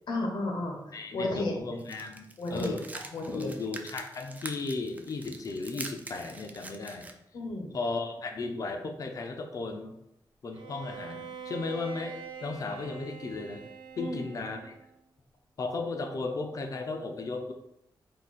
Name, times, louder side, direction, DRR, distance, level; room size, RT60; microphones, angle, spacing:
voice 1, 0.1-1.5 2.4-3.5 7.3-7.7 14.0-14.2, left 2 dB, 70° left, 1 dB, 0.8 m, -33 dB
voice 2, 0.9-2.9 3.3-7.1 7.7-10.0 10.4-13.6 14.0-14.8 15.6-17.5, left 3 dB, 45° left, 5 dB, 0.5 m, -35 dB
sound 1, 1.8-7.1, right 2 dB, 20° right, 0.3 m, -44 dB
Bowed string instrument, 10.5-14.9, right 6 dB, 80° right, 0.5 m, -44 dB
3.8 x 2.7 x 4.1 m, 0.81 s
wide cardioid pair, 180°, 8 cm